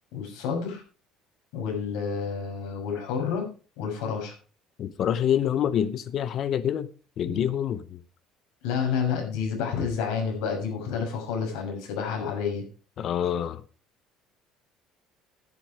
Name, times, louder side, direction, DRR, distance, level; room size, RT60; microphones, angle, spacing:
voice 1, 0.1-0.8 1.5-3.5 3.8-4.3 7.2-7.4 8.6-12.6, left 6 dB, 85° left, 6.3 m, -29 dB
voice 2, 4.8-6.9 7.2-8.0 13.0-13.6, left 9 dB, 40° left, 0.7 m, -26 dB
10.5 x 10.0 x 5.0 m
cardioid pair, 165°, 0 cm